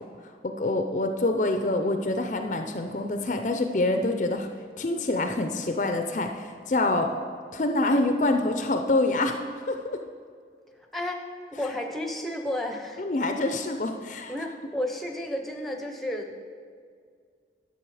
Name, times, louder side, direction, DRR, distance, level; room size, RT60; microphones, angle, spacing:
voice 1, 0.4-4.5 4.8-7.1 7.5-9.4 9.7-10.0 13.0-14.3, left 2 dB, 45° left, 6 dB, 0.5 m, -26 dB
voice 2, 10.9-11.2 11.5-13.0 14.3-16.4, left 1 dB, ahead, 3 dB, 0.7 m, -32 dB
11.0 x 6.8 x 4.8 m, 2.1 s
head